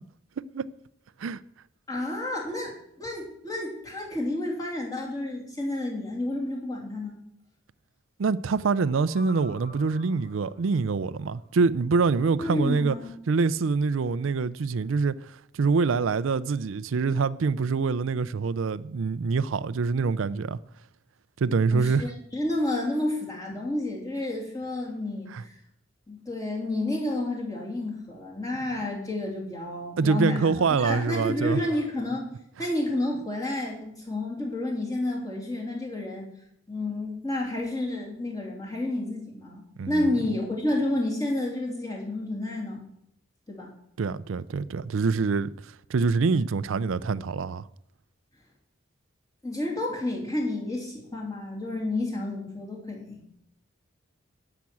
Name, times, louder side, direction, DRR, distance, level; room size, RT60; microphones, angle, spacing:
voice 1, 1.9-7.2 12.4-13.1 21.7-25.5 26.1-30.5 30.8-32.3 32.6-36.3 36.7-42.8 43.5-43.7 49.4-53.2, left 1 dB, 20° left, 2.9 m, -30 dB
voice 2, 8.2-13.0 13.3-20.6 21.4-22.1 25.3-25.4 30.0-31.6 39.8-40.1 44.0-47.6, right 4 dB, 80° right, 0.4 m, -25 dB
sound 1, 8.5-11.5, right 1 dB, 50° left, 6.1 m, -49 dB
12.0 x 6.0 x 8.5 m
head